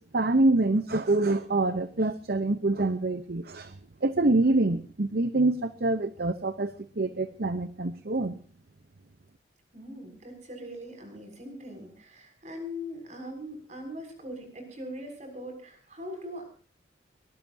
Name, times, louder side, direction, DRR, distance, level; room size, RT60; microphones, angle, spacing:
voice 1, 0.0-8.4, right 2 dB, 55° right, 12 dB, 0.9 m, -26 dB
voice 2, 9.7-16.4, equal, 40° right, 5 dB, 6.8 m, -41 dB
23.5 x 20.0 x 2.8 m, 0.39 s
head